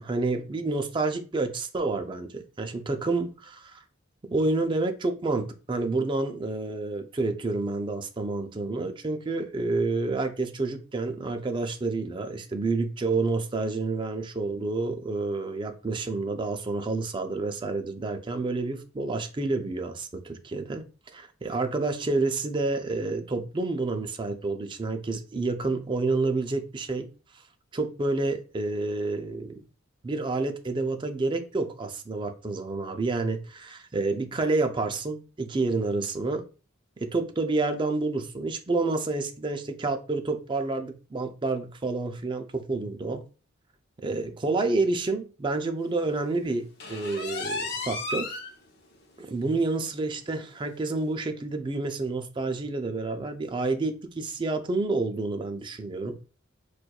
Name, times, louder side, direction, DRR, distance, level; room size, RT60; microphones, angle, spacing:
voice 1, 0.0-3.8 4.3-20.8 21.1-27.1 27.3-27.4 27.7-29.5 30.0-36.4 37.0-43.2 44.0-48.4 49.2-56.2, right 3 dB, 25° right, 0.4 m, -29 dB
sound 1, 46.8-48.5 48.9-49.0 49.5-49.6 50.0-50.1 51.0-51.1, left 3 dB, 55° left, 0.6 m, -33 dB
4.2 x 2.3 x 2.3 m
head